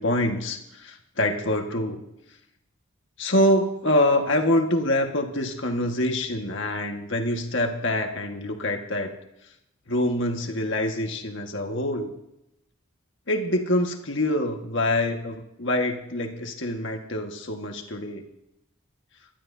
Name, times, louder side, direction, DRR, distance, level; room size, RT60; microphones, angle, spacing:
voice 1, 0.0-2.0 3.2-9.2 9.9-12.1 13.3-18.2, left 1 dB, 60° left, 3 dB, 1.7 m, -25 dB
25.0 x 12.5 x 2.8 m, 0.85 s
head